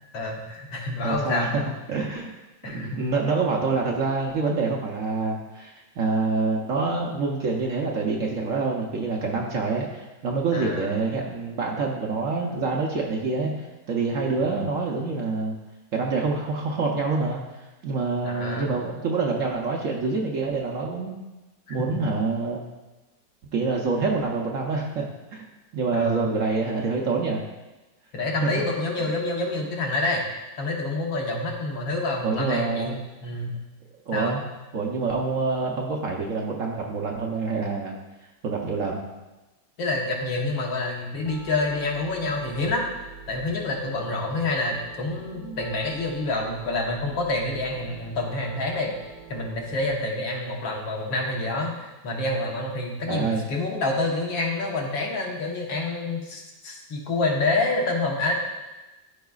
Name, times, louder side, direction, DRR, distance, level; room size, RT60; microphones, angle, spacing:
voice 1, 0.1-1.5 2.6-3.0 10.5-10.9 14.4-14.5 18.2-18.7 21.7-22.0 25.9-26.3 28.1-30.2 30.6-33.6 34.1-34.4 39.8-42.9 43.3-49.0 49.3-58.3, left 2 dB, 85° left, -1 dB, 1.9 m, -27 dB
voice 2, 1.0-1.6 1.9-2.3 2.7-15.6 15.9-17.4 17.8-21.2 21.7-22.7 23.5-25.0 25.3-25.4 25.7-27.4 28.4-28.5 32.2-33.0 34.1-34.4 34.7-38.0 38.4-39.0 45.4-45.6 53.1-53.4, right 4 dB, 60° right, 0 dB, 0.9 m, -26 dB
Piano, 41.3-49.9, right 6 dB, 75° right, 1.6 m, -45 dB
13.0 x 4.8 x 2.4 m, 1.1 s
omnidirectional pair, 2.0 m